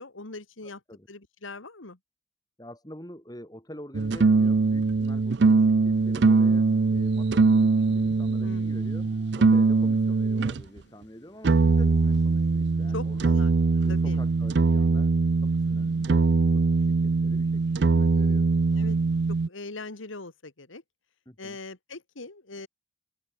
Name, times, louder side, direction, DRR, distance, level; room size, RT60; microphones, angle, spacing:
voice 1, 0.0-0.8 1.1-2.0 8.4-8.9 12.9-13.5 13.9-14.2 18.7-19.0 19.3-20.8 21.4-22.7, left 3 dB, 85° left, 2.0 m, -41 dB
voice 2, 0.6-1.1 2.6-9.1 9.3-13.4 13.8-15.1 15.4-18.5 21.3-21.6, equal, 20° left, 5.1 m, -46 dB
sound 1, 3.9-10.6 11.4-19.5, right 4 dB, 60° right, 0.5 m, -22 dB
sound 2, 5.9-12.7, left 1 dB, 60° left, 2.4 m, -55 dB
open air
head